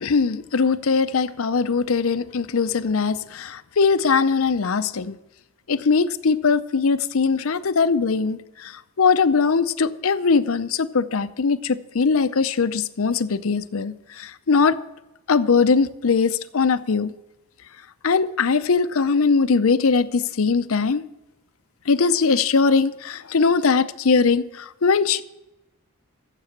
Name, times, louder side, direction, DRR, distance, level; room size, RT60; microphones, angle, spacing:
voice 1, 0.0-5.2 5.7-14.8 15.3-17.1 18.0-21.0 21.9-25.2, left 5 dB, 70° left, 0.6 m, -21 dB
15.0 x 7.6 x 5.9 m
head